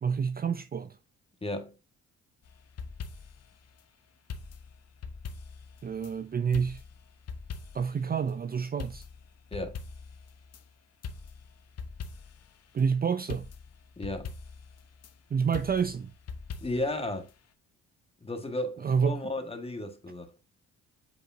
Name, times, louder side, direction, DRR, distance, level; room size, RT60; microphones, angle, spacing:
voice 1, 0.0-1.0 5.8-6.8 7.7-9.0 12.7-13.5 15.3-16.1 18.8-19.2, right 6 dB, 30° right, 0.5 m, -28 dB
voice 2, 1.4-1.7 9.5-9.8 14.0-14.3 16.6-17.3 18.2-20.4, left 1 dB, 20° left, 1.7 m, -34 dB
sound 1, 2.5-3.5 4.3-6.1 6.5-8.0 8.3-8.4 8.8-10.6 11.0-12.5 12.8-12.9 13.3-15.1 15.5-17.0 17.3-17.4, left 5 dB, 55° left, 1.0 m, -42 dB
8.0 x 5.0 x 2.7 m
cardioid pair, 90°, 30 cm